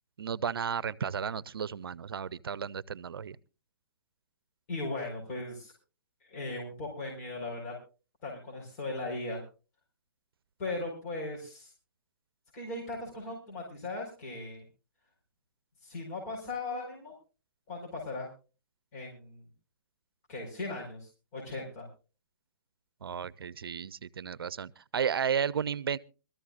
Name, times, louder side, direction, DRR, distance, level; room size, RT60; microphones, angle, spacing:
voice 1, 0.2-3.4 23.0-26.0, right 7 dB, 85° right, 0.6 m, -33 dB
voice 2, 4.7-5.7 6.2-7.7 8.2-9.4 10.6-11.7 12.5-14.6 15.8-17.1 17.7-18.3 18.9-19.4 20.3-21.9, left 2 dB, 40° left, 4.8 m, -38 dB
23.5 x 14.0 x 2.5 m
hypercardioid pair, 140°, 12 cm